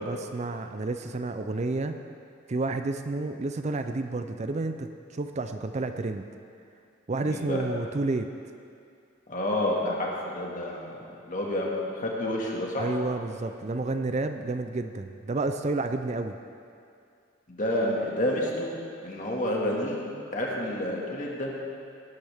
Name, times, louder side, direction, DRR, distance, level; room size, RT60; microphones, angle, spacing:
voice 1, 0.0-2.0 2.5-6.3 7.1-8.3 12.8-16.4, right 3 dB, 35° right, 8 dB, 0.5 m, -30 dB
voice 2, 7.2-7.6 9.3-12.9 17.5-20.0 20.3-21.5, left 1 dB, 40° left, -2 dB, 2.0 m, -29 dB
17.5 x 11.5 x 3.6 m, 2.4 s
head